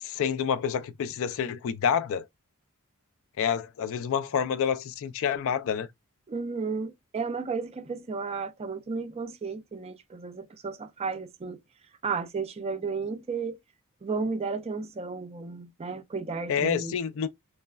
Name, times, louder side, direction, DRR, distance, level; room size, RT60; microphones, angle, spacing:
voice 1, 0.0-2.3 3.4-5.9 16.5-17.3, left 7 dB, 65° left, 0.3 m, -28 dB
voice 2, 6.3-11.6 12.0-13.6 14.0-17.0, right 4 dB, 30° right, 0.4 m, -33 dB
3.3 x 2.0 x 2.2 m
head